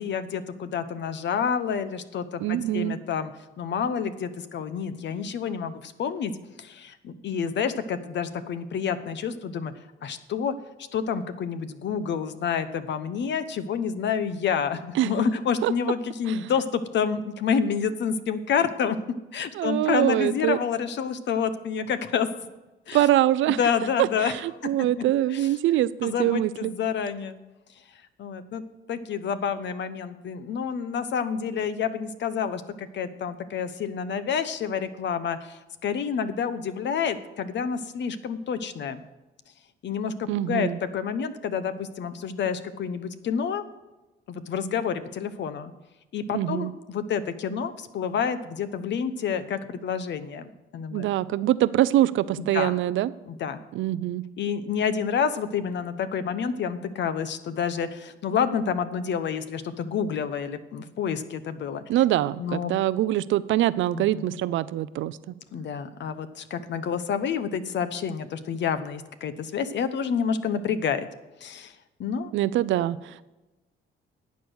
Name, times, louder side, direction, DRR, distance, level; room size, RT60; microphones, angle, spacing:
voice 1, 0.0-3.3 3.6-6.3 6.6-9.7 10.0-10.5 10.9-19.0 19.3-22.3 22.9-23.0 23.5-24.4 24.6-24.7 25.3-25.5 26.0-27.4 28.2-28.6 28.9-39.0 39.8-43.6 44.3-45.7 46.1-51.0 52.4-52.7 53.3-53.6 54.4-61.8 62.4-62.7 63.9-64.3 65.5-71.1 71.4-72.3, left 7 dB, 65° left, 11 dB, 0.9 m, -28 dB
voice 2, 2.4-3.0 14.9-15.1 15.6-15.7 19.5-20.6 22.9-23.6 24.0-26.7 40.3-40.8 46.3-46.7 50.9-53.1 53.7-54.2 61.9-65.2 72.3-73.3, right 13 dB, 80° right, 17 dB, 0.5 m, -24 dB
11.5 x 8.2 x 6.3 m, 1.1 s
cardioid pair, 90°, 20 cm